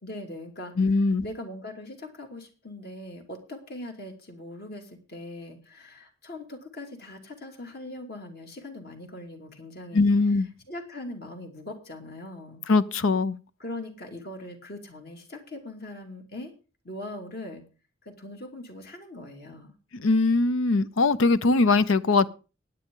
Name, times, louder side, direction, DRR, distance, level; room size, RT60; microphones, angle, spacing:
voice 1, 0.0-10.0 10.7-12.6 13.6-16.5 16.8-17.6 18.0-19.7, left 1 dB, 50° left, 2.6 m, -41 dB
voice 2, 0.8-1.2 9.9-10.5 12.7-13.4 19.9-22.3, left 3 dB, 80° left, 0.7 m, -21 dB
16.5 x 9.9 x 3.8 m
head